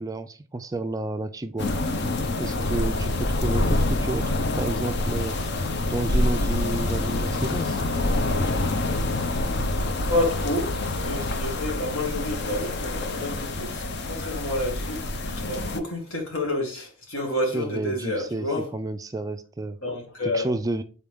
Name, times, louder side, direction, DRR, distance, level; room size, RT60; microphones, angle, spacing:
voice 1, 0.0-1.8 2.4-5.4 5.9-7.8 17.5-18.4 18.7-19.8 20.3-20.8, right 2 dB, 15° right, 0.3 m, -31 dB
sound 1, 1.6-15.8, left 2 dB, 50° left, 0.6 m, -26 dB
voice 2, 10.1-15.0 15.4-18.7 19.8-20.5, left 1 dB, 70° left, 2.0 m, -29 dB
7.3 x 4.2 x 3.5 m
head